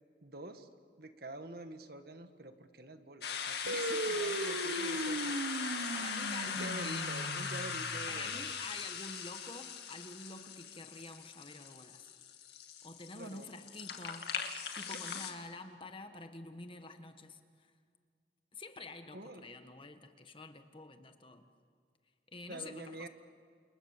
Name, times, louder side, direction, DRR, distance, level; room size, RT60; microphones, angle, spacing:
voice 1, 0.2-0.7 1.0-5.3 6.4-8.4 13.1-13.5 14.8-15.2 19.1-19.5 22.5-23.1, right 2 dB, 55° right, 8 dB, 1.7 m, -47 dB
sound 1, 3.2-15.3, left 6 dB, 60° left, 2.2 m, -40 dB
sound 2, 3.7-8.5, right 1 dB, 85° right, 1.3 m, -38 dB
voice 2, 4.7-5.1 5.9-7.1 8.1-12.1 12.8-14.3 14.7-17.7 18.5-21.4 22.3-23.1, left 2 dB, 30° left, 7 dB, 1.5 m, -48 dB
28.5 x 28.5 x 7.3 m, 2.2 s
head